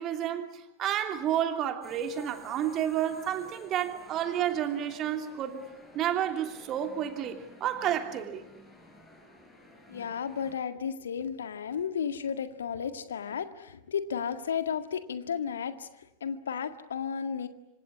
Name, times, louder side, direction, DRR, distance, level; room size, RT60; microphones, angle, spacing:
voice 1, 0.0-5.6 5.9-8.5, right 10 dB, 35° right, 6 dB, 3.0 m, -30 dB
sound 1, 1.8-10.5, left 1 dB, 15° left, 7.2 m, -52 dB
voice 2, 9.9-15.9 16.2-17.5, left 7 dB, 65° left, 9 dB, 1.9 m, -33 dB
26.0 x 26.0 x 8.5 m, 0.89 s
figure-of-eight pair, 90°, 0 cm